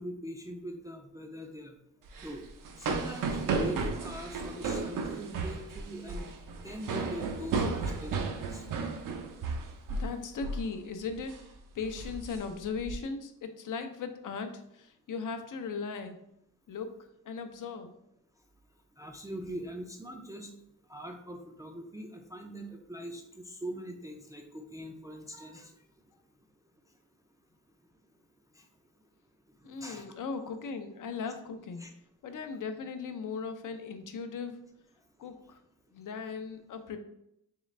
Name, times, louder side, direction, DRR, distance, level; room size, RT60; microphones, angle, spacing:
voice 1, 0.0-1.8 2.2-2.4 2.8-8.6 19.0-20.5 20.9-25.7 28.5-28.7 29.6-30.1 31.8-31.9, right 1 dB, 10° right, 2 dB, 0.3 m, -42 dB
sound 1, 2.1-10.1 10.4-10.7 11.1-11.4 11.8-13.0, right 4 dB, 75° right, 0.6 m, -34 dB
voice 2, 9.9-11.4 11.7-16.2 16.7-17.9 29.6-31.9 32.2-34.6 35.2-35.6 35.9-37.0, left 5 dB, 70° left, 7 dB, 0.6 m, -38 dB
3.7 x 3.3 x 3.1 m, 0.78 s
wide cardioid pair, 135°, 32 cm